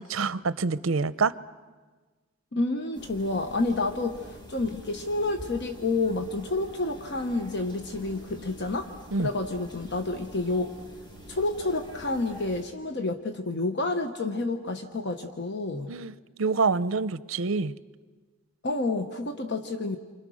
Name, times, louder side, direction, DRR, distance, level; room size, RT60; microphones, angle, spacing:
voice 1, 0.0-1.3 9.1-9.3 15.9-16.1 16.4-17.7, right 4 dB, 75° right, 15 dB, 0.7 m, -26 dB
voice 2, 2.5-8.9 9.2-10.7 11.3-15.9 18.6-20.0, left 2 dB, 55° left, 6 dB, 1.1 m, -29 dB
sound 1, 2.9-12.6, equal, 20° left, 2.0 m, -46 dB
29.5 x 25.5 x 6.4 m, 1.4 s
head